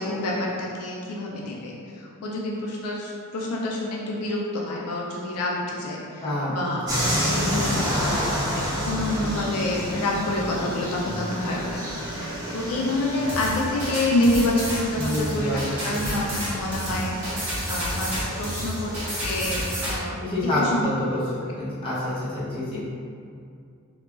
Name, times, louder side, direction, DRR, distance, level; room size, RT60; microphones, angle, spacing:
voice 1, 0.0-12.0 12.5-17.2 17.7-18.9 19.2-20.9, left 2 dB, 80° left, -3 dB, 0.4 m, -28 dB
voice 2, 6.9-7.9 15.0-16.1 20.2-21.2 21.6-22.8, left 1 dB, 25° left, -10 dB, 0.7 m, -28 dB
sound 1, 6.9-19.5, equal, 15° right, 0.7 m, -30 dB
sound 2, 13.3-19.9, equal, 85° right, 1.3 m, -30 dB
2.8 x 2.2 x 2.4 m, 2.4 s
head